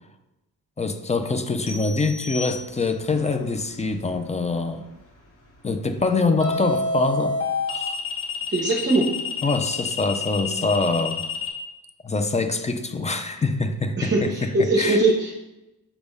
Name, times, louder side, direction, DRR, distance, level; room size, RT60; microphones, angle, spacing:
voice 1, 0.8-4.9 5.6-7.4 7.7-8.0 9.4-11.2 12.0-15.0, left 3 dB, 20° left, 7 dB, 0.4 m, -24 dB
sound 1, 1.7-3.2, left 3 dB, 90° left, 1.5 m, -37 dB
sound 2, 3.1-3.4 6.4-11.5, left 4 dB, 35° left, 1.3 m, -28 dB
voice 2, 8.5-9.0 14.0-15.4, right 2 dB, 30° right, -1 dB, 0.8 m, -21 dB
7.1 x 3.4 x 5.3 m, 0.97 s
wide cardioid pair, 165°, 38 cm